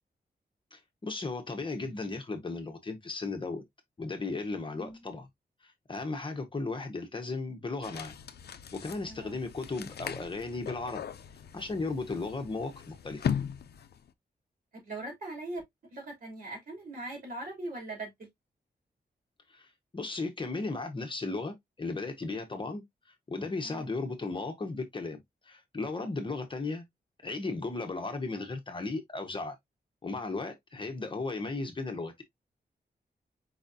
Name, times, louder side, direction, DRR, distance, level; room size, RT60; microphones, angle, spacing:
voice 1, 0.7-3.6 4.0-5.3 5.9-8.1 8.7-11.1 11.5-13.3 19.5-19.7 19.9-22.8 23.3-25.2 25.5-26.8 27.2-29.5 30.0-32.2, left 3 dB, 30° left, 1.0 m, -35 dB
voice 2, 4.7-5.1 9.1-9.3 14.8-15.6 15.9-18.3 23.6-23.9, right 2 dB, 60° right, 3.0 m, -40 dB
sound 1, 7.8-14.1, left 8 dB, 75° left, 0.5 m, -38 dB
4.9 x 4.0 x 2.6 m
wide cardioid pair, 155°, 17 cm